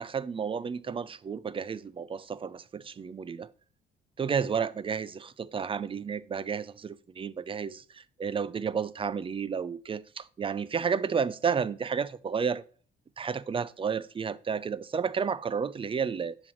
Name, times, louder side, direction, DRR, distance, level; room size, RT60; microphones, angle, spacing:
voice 1, 0.0-3.5 4.2-12.6 13.2-16.4, right 6 dB, 25° right, 0.4 m, -31 dB
7.4 x 6.1 x 3.0 m
cardioid pair, 90°, 20 cm